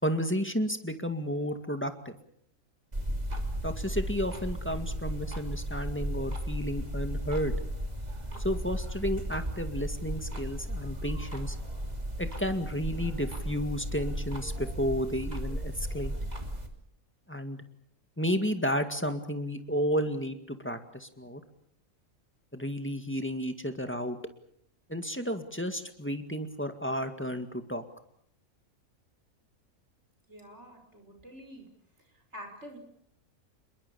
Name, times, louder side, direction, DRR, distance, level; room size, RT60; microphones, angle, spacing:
voice 1, 0.0-2.2 3.6-7.5 8.4-11.6 12.2-16.1 17.3-17.6 18.2-21.4 22.5-24.2 24.9-27.8, equal, 10° left, 7 dB, 2.0 m, -32 dB
sound 1, 2.9-16.7, right 1 dB, 30° right, 3.1 m, -35 dB
voice 2, 30.3-31.7 32.0-32.8, equal, 50° right, 5 dB, 5.7 m, -47 dB
27.5 x 22.0 x 7.0 m, 0.67 s
omnidirectional pair, 1.5 m